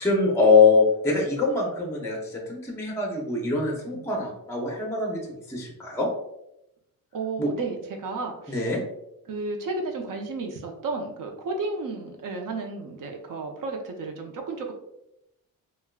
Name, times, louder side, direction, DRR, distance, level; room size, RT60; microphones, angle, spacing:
voice 1, 0.0-6.1 7.4-7.5 8.5-8.8, left 4 dB, 10° left, -1 dB, 0.5 m, -23 dB
voice 2, 7.1-8.7 9.3-14.7, right 3 dB, 65° right, 3 dB, 0.6 m, -33 dB
3.4 x 2.2 x 2.2 m, 0.83 s
cardioid pair, 120°, 36 cm